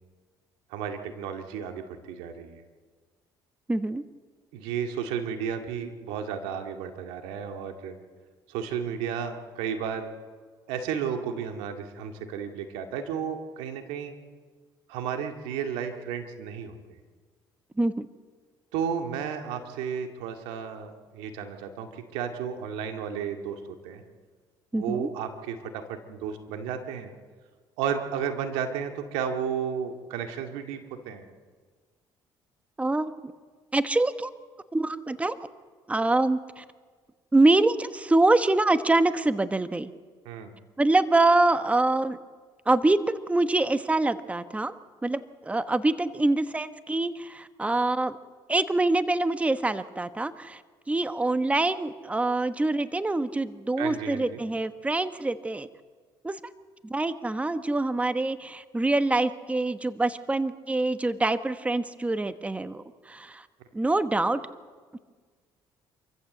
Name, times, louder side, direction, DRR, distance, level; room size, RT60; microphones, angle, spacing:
voice 1, 0.7-2.6 4.5-8.0 8.5-10.1 10.7-14.1 14.9-16.8 18.7-24.0 24.7-27.1 27.8-30.8 31.1-31.2 40.3-40.5 53.8-54.4, right 7 dB, 90° right, 5 dB, 2.1 m, -33 dB
voice 2, 3.7-4.0 17.8-18.1 24.7-25.1 32.8-33.1 33.7-34.3 34.7-35.4 35.9-36.6 37.3-39.9 40.8-42.2 42.7-43.0 43.3-44.7 45.0-48.2 48.5-50.6 50.9-55.7 56.2-56.4 56.8-63.4 63.7-64.4, right 2 dB, 15° right, 11 dB, 1.1 m, -25 dB
26.5 x 14.5 x 7.9 m, 1.5 s
supercardioid pair, 80°, 10 cm